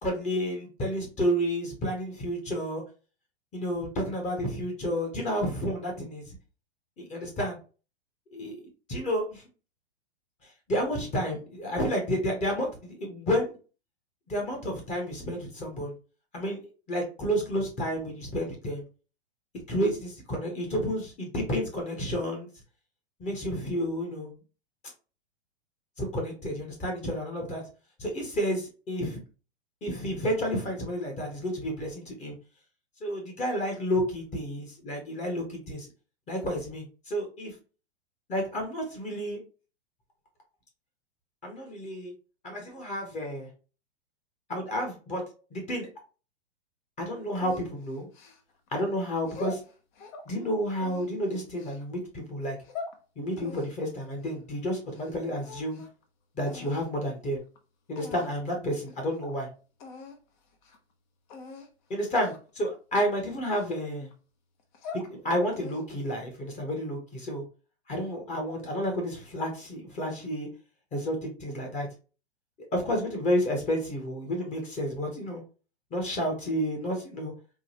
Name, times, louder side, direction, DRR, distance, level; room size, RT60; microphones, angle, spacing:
voice 1, 0.0-2.8 3.5-6.2 7.0-7.6 8.3-8.6 8.9-9.4 10.4-13.6 14.3-15.9 16.3-18.8 19.7-22.5 23.2-24.4 26.0-27.6 28.0-29.2 29.8-32.3 33.0-35.9 36.3-37.5 38.3-39.4 41.4-42.1 42.4-43.5 44.5-45.2 45.5-45.9 47.0-48.1 48.7-49.6 50.3-52.6 53.2-55.8 56.4-57.4 57.9-59.5 61.9-64.1 64.9-67.4 67.9-70.5 70.9-71.9 72.7-75.4 75.9-77.3, equal, 20° left, 2 dB, 1.0 m, -30 dB
sound 1, 47.4-48.7 49.2-50.3 50.8-51.8 52.4-53.0 53.4-55.1 55.4-56.0 56.5-56.9 57.6-57.7 58.0-58.5 58.9-59.0 59.2-59.4 59.8-60.2 60.5-60.8 61.3-61.7 62.2-62.5 62.9-64.1 64.6-65.1 65.5-66.0, left 3 dB, 45° left, 0.9 m, -43 dB
3.8 x 2.2 x 2.9 m, 0.34 s
hypercardioid pair, 110°, 33 cm